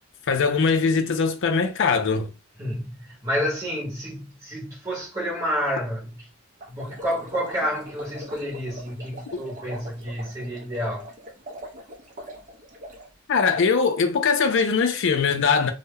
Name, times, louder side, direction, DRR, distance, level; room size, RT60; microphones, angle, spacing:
voice 1, 0.3-2.3 13.3-15.7, left 5 dB, 60° left, 0.4 m, -21 dB
voice 2, 2.6-6.3 6.7-11.1, equal, 20° right, 0.9 m, -29 dB
sound 1, 6.6-13.1, right 1 dB, 35° right, 0.5 m, -41 dB
2.1 x 2.0 x 3.4 m
head